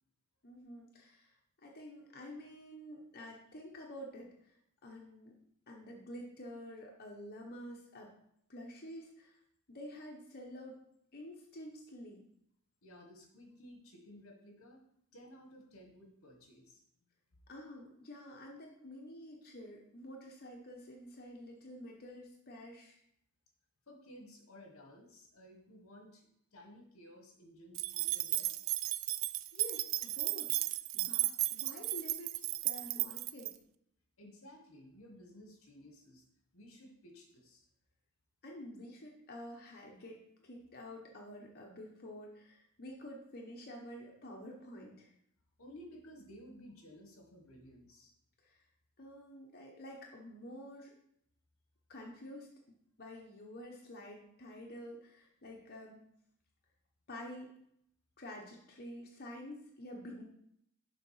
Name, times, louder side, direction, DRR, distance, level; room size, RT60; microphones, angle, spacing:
voice 1, 0.4-1.3 1.6-5.3 5.7-8.1 8.5-9.4 9.7-10.8 11.1-12.2 17.5-23.0 29.5-32.4 32.6-33.5 38.4-45.1 48.4-48.6 49.0-50.9 51.9-52.5 53.0-56.0 57.1-57.5 58.2-60.3, left 1 dB, 45° left, -1 dB, 1.0 m, -49 dB
voice 2, 12.8-14.8 15.1-16.8 23.9-28.6 34.2-36.2 36.5-37.7 45.6-48.1, equal, 65° left, 3 dB, 1.3 m, -55 dB
sound 1, 27.7-33.5, right 16 dB, 60° right, 0.3 m, -35 dB
6.9 x 3.7 x 5.6 m, 0.72 s
head